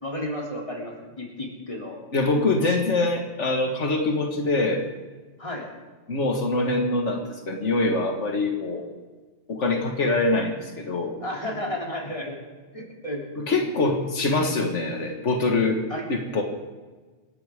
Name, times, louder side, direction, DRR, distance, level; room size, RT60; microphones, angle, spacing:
voice 1, 0.0-2.0 5.4-5.7 11.2-12.4 12.7-13.2 15.9-16.1, left 1 dB, 30° left, -2 dB, 3.3 m, -32 dB
voice 2, 2.1-4.8 6.1-8.9 9.5-11.1 13.4-15.8 16.1-16.4, left 2 dB, 90° left, 2 dB, 1.9 m, -24 dB
27.0 x 11.5 x 3.6 m, 1.3 s
omnidirectional pair, 1.2 m